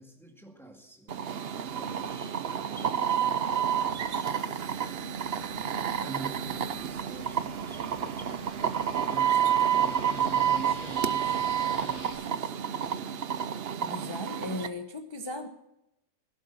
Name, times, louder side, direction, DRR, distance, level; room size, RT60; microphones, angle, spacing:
voice 1, 0.0-3.4 3.7-4.6 5.3-8.5 9.1-12.6, right 2 dB, ahead, 2 dB, 2.1 m, -47 dB
sound 1, 1.1-14.7, right 8 dB, 50° right, 0.8 m, -29 dB
sound 2, 4.8-12.1, equal, 75° left, 6.8 m, -49 dB
voice 2, 13.8-15.5, left 2 dB, 20° left, 5 dB, 0.8 m, -37 dB
16.5 x 12.0 x 5.7 m, 0.87 s
omnidirectional pair, 1.7 m